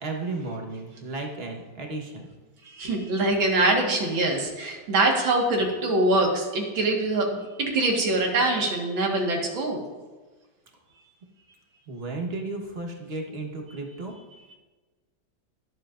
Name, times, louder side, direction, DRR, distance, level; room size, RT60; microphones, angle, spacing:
voice 1, 0.0-2.3 11.9-14.2, right 3 dB, 35° right, 1 dB, 1.3 m, -34 dB
voice 2, 2.6-9.8, right 2 dB, 75° right, 1 dB, 2.4 m, -24 dB
19.5 x 7.4 x 2.5 m, 1.3 s
omnidirectional pair, 2.1 m